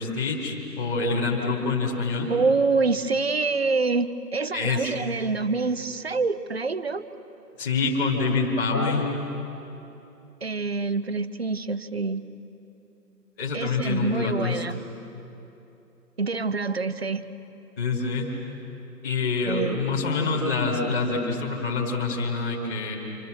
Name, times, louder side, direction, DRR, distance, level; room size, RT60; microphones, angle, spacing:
voice 1, 0.0-2.3 4.5-5.0 7.6-9.1 13.4-14.6 17.8-18.3 19.0-22.9, left 4 dB, 10° left, -8 dB, 2.2 m, -26 dB
voice 2, 2.3-7.1 10.4-12.2 13.5-14.8 16.2-17.2 19.5-19.8, right 4 dB, 40° right, 13 dB, 0.7 m, -26 dB
29.0 x 27.0 x 6.4 m, 3.0 s
hypercardioid pair, 170°, 50 cm